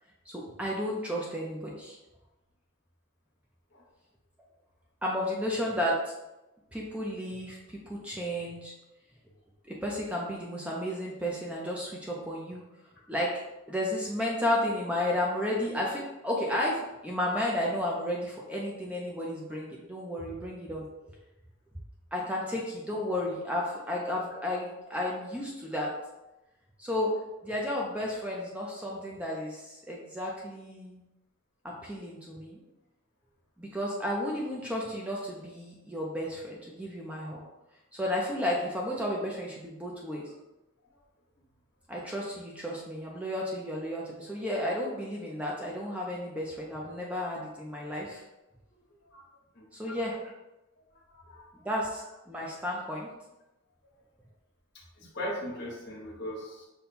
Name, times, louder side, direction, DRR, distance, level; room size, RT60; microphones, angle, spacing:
voice 1, 0.3-2.0 5.0-6.1 6.7-8.7 9.7-12.6 13.1-13.3 13.7-20.9 22.1-25.9 26.8-27.1 27.4-31.0 31.6-32.6 33.6-37.5 37.9-40.3 41.9-48.2 49.7-50.2 51.5-53.1, left 1 dB, 5° right, -3 dB, 0.5 m, -33 dB
voice 2, 50.9-51.5 55.0-56.7, equal, 50° left, -4 dB, 1.3 m, -39 dB
5.4 x 2.2 x 4.2 m, 0.98 s
head